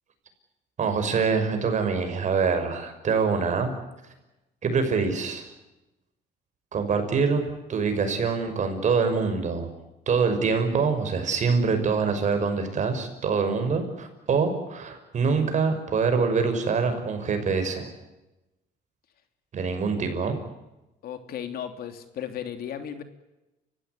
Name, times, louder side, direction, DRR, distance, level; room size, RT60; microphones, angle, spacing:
voice 1, 0.8-3.7 4.6-5.5 6.7-7.4 7.7-9.7 10.1-17.9 19.5-20.4, right 5 dB, 45° right, 7 dB, 6.1 m, -25 dB
voice 2, 21.0-23.0, left 9 dB, 65° left, 8 dB, 3.1 m, -35 dB
29.5 x 16.0 x 9.9 m, 0.99 s
cardioid pair, 110°, 17 cm